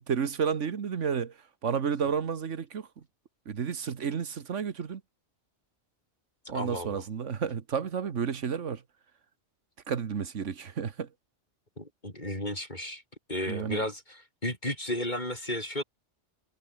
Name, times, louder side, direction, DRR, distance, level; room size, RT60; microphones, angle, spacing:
voice 1, 0.0-1.3 1.6-2.9 3.5-5.0 6.5-8.8 9.9-11.1 13.5-13.8, right 7 dB, 80° right, 1.6 m, -31 dB
voice 2, 6.5-7.0 11.8-13.0 13.3-15.8, left 1 dB, 40° left, 8.1 m, -33 dB
omnidirectional pair, 1.2 m